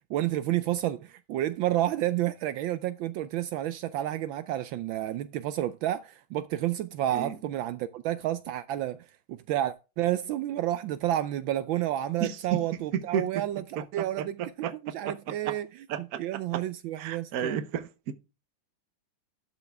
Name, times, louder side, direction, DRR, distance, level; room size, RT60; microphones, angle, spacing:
voice 1, 0.1-14.4 14.8-15.7 16.0-17.6, right 13 dB, 75° right, 1.3 m, -30 dB
voice 2, 12.2-12.6 12.9-13.4 13.8-15.5 15.9-16.6 17.0-18.1, right 9 dB, 55° right, 1.2 m, -33 dB
12.0 x 5.8 x 3.4 m
omnidirectional pair, 2.3 m